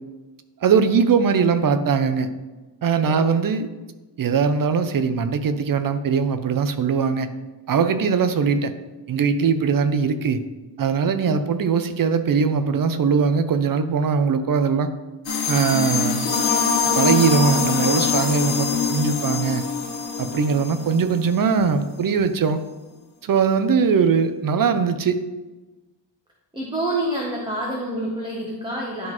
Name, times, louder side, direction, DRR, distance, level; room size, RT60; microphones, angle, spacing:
voice 1, 0.6-2.3 2.8-3.7 4.2-7.3 7.7-8.7 9.1-10.4 10.8-14.9 15.5-16.3 16.9-19.6 20.2-22.6 23.2-25.2, right 6 dB, 50° right, 10 dB, 0.5 m, -20 dB
sound 1, 15.3-21.5, left 6 dB, 80° left, 1.2 m, -23 dB
voice 2, 26.5-29.1, right 1 dB, 10° right, -3 dB, 0.9 m, -27 dB
11.0 x 3.8 x 3.0 m, 1.2 s
wide cardioid pair, 135°, 46 cm